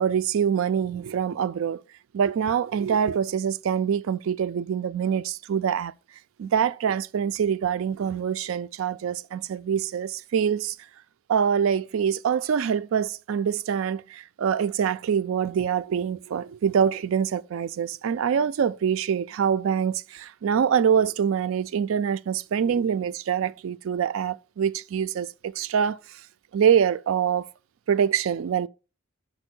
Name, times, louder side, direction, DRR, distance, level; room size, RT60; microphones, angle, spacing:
voice 1, 0.0-1.8 2.1-5.9 6.4-10.8 11.3-26.0 26.5-27.5 27.9-28.7, right 7 dB, 75° right, 0.3 m, -25 dB
5.4 x 4.5 x 6.0 m
head